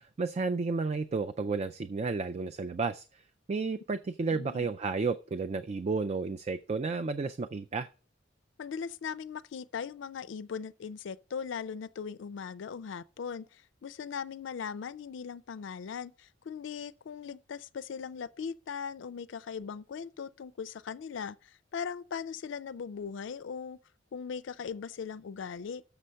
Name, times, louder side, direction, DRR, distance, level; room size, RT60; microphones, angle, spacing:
voice 1, 0.0-3.0 3.5-7.9, right 4 dB, 35° right, 0.3 m, -32 dB
voice 2, 4.3-4.7 8.6-23.8 24.1-25.8, left 6 dB, 70° left, 0.4 m, -39 dB
6.9 x 5.6 x 6.3 m
head